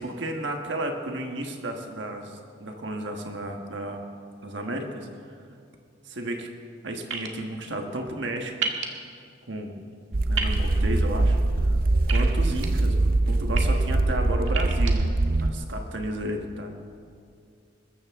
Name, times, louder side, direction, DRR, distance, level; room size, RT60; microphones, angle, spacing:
voice 1, 0.0-4.0 4.4-5.1 6.1-6.5 6.8-8.7 9.5-9.8 10.3-11.4 11.6-11.8 12.1-15.0 15.4-16.7, right 1 dB, 70° right, 3 dB, 1.3 m, -33 dB
sound 1, 7.1-7.3 8.6-8.9 10.3-10.6 12.1-12.7 13.3-13.6 14.5-14.9, right 5 dB, 85° right, 1.5 m, -29 dB
sound 2, 10.1-15.5, right 2 dB, 50° right, 0.6 m, -23 dB
20.5 x 14.0 x 3.6 m, 2.4 s
head